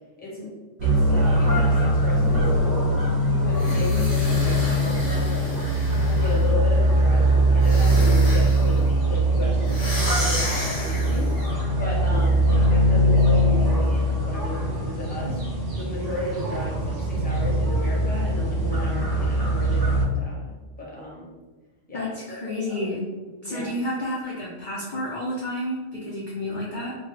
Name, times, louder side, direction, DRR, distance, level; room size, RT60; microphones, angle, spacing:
voice 1, 0.2-0.5 0.8-2.5 3.4-5.5 6.0-8.8 9.1-11.3 11.8-15.4 15.7-21.3 21.9-22.1 22.7-22.9 23.3-23.7, left 1 dB, 10° left, -5 dB, 0.7 m, -34 dB
sound 1, 0.8-20.0, right 1 dB, 60° right, 1.0 m, -21 dB
sound 2, 3.5-6.5 7.6-8.8 9.7-11.4, left 1 dB, 70° left, 1.2 m, -33 dB
voice 2, 21.9-23.0 23.4-26.9, left 1 dB, 55° left, -5 dB, 0.5 m, -30 dB
3.1 x 2.2 x 3.1 m, 1.2 s
omnidirectional pair, 1.3 m